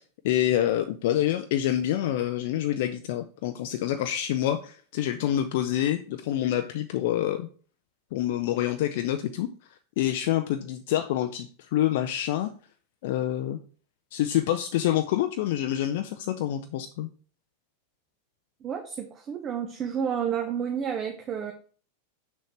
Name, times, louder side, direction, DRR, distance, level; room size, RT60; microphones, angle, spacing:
voice 1, 0.2-7.5 8.1-9.5 10.0-12.5 13.0-13.6 14.1-17.1, left 12 dB, 50° left, 8 dB, 0.4 m, -27 dB
voice 2, 18.6-21.5, right 8 dB, 30° right, 4 dB, 0.8 m, -30 dB
6.4 x 6.3 x 3.3 m, 0.41 s
figure-of-eight pair, 90°, 0 cm